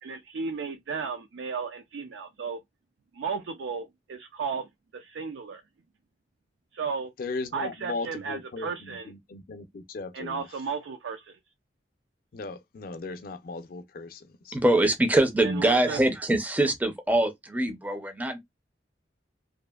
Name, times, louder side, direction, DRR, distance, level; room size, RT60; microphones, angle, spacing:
voice 1, 0.0-2.6 3.1-5.6 6.7-7.1 7.5-9.1 10.1-11.3 15.4-16.0, right 5 dB, 85° right, 0.4 m, -34 dB
voice 2, 7.2-10.4 12.3-14.6, left 3 dB, 55° left, 0.4 m, -37 dB
voice 3, 14.5-18.4, right 1 dB, 10° right, 0.4 m, -24 dB
2.6 x 2.4 x 2.2 m
head